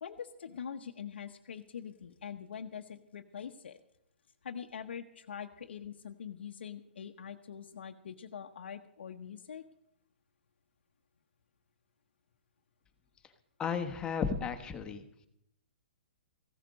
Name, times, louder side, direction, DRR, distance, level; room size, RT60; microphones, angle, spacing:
voice 1, 0.0-3.8 4.4-9.6, left 7 dB, 75° left, 4 dB, 0.9 m, -44 dB
voice 2, 13.6-15.0, left 6 dB, 15° left, 6 dB, 1.2 m, -34 dB
15.5 x 12.5 x 5.2 m, 0.78 s
hypercardioid pair, 140°, 6 cm